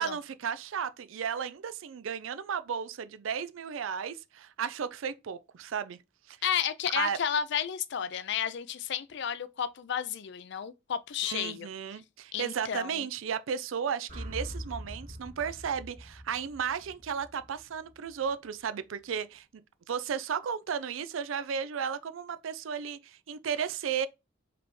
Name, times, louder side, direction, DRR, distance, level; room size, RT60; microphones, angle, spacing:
voice 1, 0.0-6.0 6.3-6.4 6.9-7.2 11.2-19.4 19.9-24.1, right 7 dB, 80° right, 0.4 m, -34 dB
voice 2, 6.4-11.7 12.3-13.1, left 8 dB, 60° left, 0.4 m, -32 dB
sound 1, 14.1-18.3, equal, 50° right, 2.2 m, -43 dB
4.9 x 3.4 x 3.1 m
head